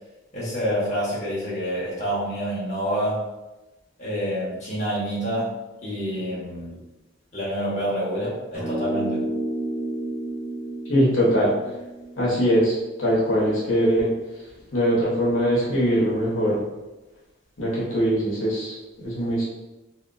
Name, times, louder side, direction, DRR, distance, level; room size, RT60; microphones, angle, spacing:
voice 1, 0.3-3.2 4.0-5.5 5.8-6.8 7.3-9.2, equal, 35° left, -8 dB, 1.0 m, -27 dB
sound 1, 8.5-13.1, right 1 dB, 30° right, 1.2 m, -31 dB
voice 2, 10.9-11.5 12.2-14.1 14.7-16.6 17.6-18.8 19.0-19.4, equal, 75° left, -6 dB, 1.0 m, -21 dB
2.9 x 2.9 x 2.5 m, 1.0 s
head